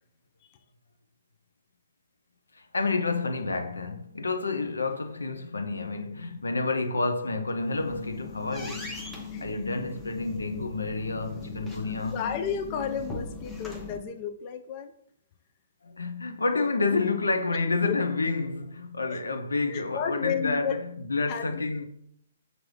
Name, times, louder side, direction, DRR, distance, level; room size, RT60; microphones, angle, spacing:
voice 1, 2.5-8.9 9.4-12.2 15.8-21.9, left 3 dB, 85° left, 0.5 m, -29 dB
sound 1, 7.5-14.0, left 4 dB, 10° left, 0.7 m, -39 dB
voice 2, 11.8-14.9 17.9-18.0 19.1-19.2 19.7-20.8 21.3-21.7, left 7 dB, 35° left, 0.4 m, -33 dB
5.9 x 2.5 x 3.2 m
figure-of-eight pair, 130°, 0 cm